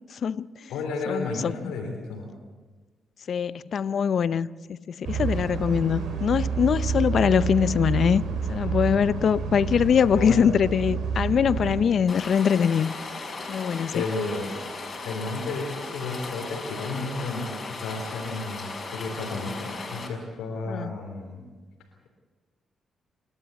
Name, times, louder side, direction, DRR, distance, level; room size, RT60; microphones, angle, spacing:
voice 1, 0.1-0.7 1.1-1.7 3.3-8.2 8.5-13.0 13.5-14.0 20.7-21.0, left 7 dB, 65° left, 0.6 m, -23 dB
voice 2, 0.7-2.3 10.1-10.5 13.9-14.5 15.0-17.5 17.8-21.4, left 3 dB, 85° left, 3.4 m, -32 dB
sound 1, 5.0-11.8, right 5 dB, 75° right, 4.4 m, -29 dB
Rain, 12.1-20.1, left 3 dB, 45° left, 5.8 m, -36 dB
28.0 x 12.5 x 8.4 m
supercardioid pair, 50°, 0 cm